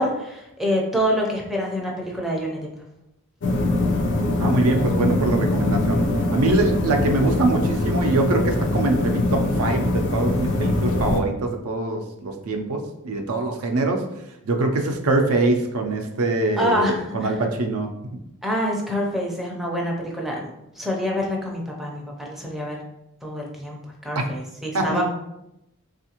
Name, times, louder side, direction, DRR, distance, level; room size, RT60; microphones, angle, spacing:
voice 1, 0.0-2.6 16.6-17.4 18.4-20.5 20.8-22.8 23.2-25.0, equal, ahead, -2 dB, 0.5 m, -26 dB
sound 1, 3.4-11.2, left 2 dB, 55° left, 0.5 m, -22 dB
voice 2, 4.4-14.0 14.5-17.9 24.2-24.3 24.7-25.0, right 2 dB, 80° right, 4 dB, 0.5 m, -23 dB
3.5 x 2.4 x 2.8 m, 0.86 s
head